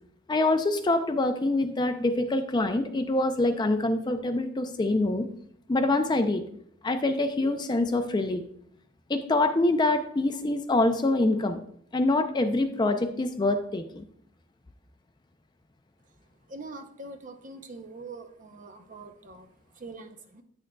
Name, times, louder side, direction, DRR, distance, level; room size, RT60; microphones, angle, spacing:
voice 1, 0.3-5.3 5.7-6.4 6.8-8.4 9.1-11.6 11.9-14.0, left 2 dB, 20° left, 8 dB, 0.4 m, -25 dB
voice 2, 16.5-20.4, right 3 dB, 40° right, 7 dB, 0.6 m, -44 dB
9.5 x 6.3 x 2.2 m, 0.67 s
head